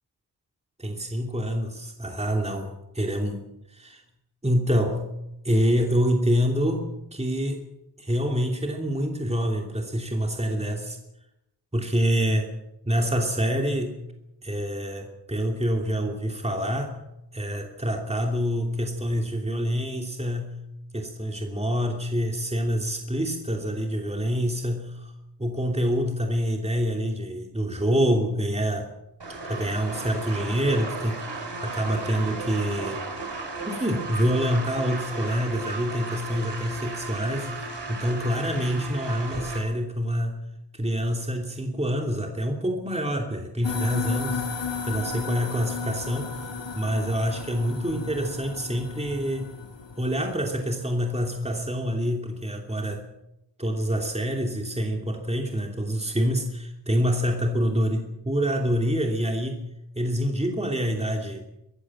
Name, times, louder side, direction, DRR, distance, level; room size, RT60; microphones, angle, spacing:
voice 1, 0.8-4.0 4.4-5.0 5.4-7.7 8.0-11.0 11.7-12.5 12.8-14.0 14.4-17.0 17.3-20.6 20.9-25.1 25.4-28.9 29.5-33.1 33.6-40.4 40.7-46.5 46.8-49.5 50.0-53.0 53.6-59.6 60.0-61.4, equal, 15° right, 2 dB, 2.8 m, -26 dB
sound 1, 29.2-39.6, right 3 dB, 75° right, 5.6 m, -35 dB
sound 2, 43.6-51.3, left 5 dB, 90° left, 3.3 m, -35 dB
24.5 x 14.5 x 7.6 m, 0.89 s
wide cardioid pair, 90°, 43 cm